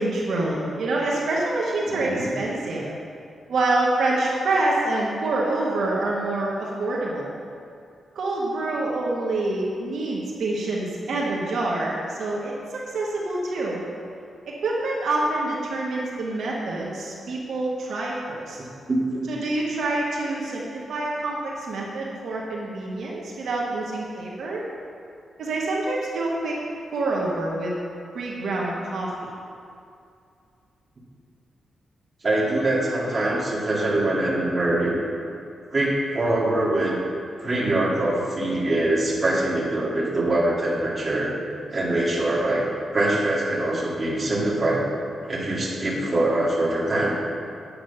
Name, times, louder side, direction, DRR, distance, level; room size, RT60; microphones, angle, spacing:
voice 1, 0.0-2.9 3.5-7.4 8.1-13.8 14.5-18.6 19.3-24.6 25.4-26.5 26.9-27.8 28.1-29.3, right 2 dB, 75° right, -4 dB, 1.5 m, -26 dB
voice 2, 1.9-2.3 18.9-19.3 32.2-34.9 35.7-37.0 37.4-41.3 41.7-42.6 42.9-44.8 45.3-47.2, right 1 dB, 30° right, -6 dB, 2.4 m, -23 dB
8.8 x 7.9 x 5.6 m, 2.4 s
wide cardioid pair, 120°, 0 cm